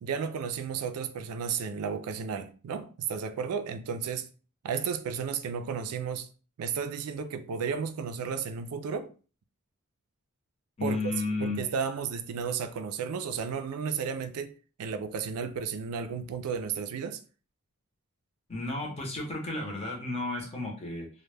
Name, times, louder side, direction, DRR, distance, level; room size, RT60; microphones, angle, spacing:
voice 1, 0.0-4.3 4.6-6.3 6.6-9.1 10.8-11.1 11.4-14.5 14.8-17.2, right 6 dB, 80° right, 0.3 m, -33 dB
voice 2, 10.8-11.6 18.5-21.1, left 2 dB, 25° left, 0.7 m, -33 dB
2.1 x 2.1 x 3.2 m
head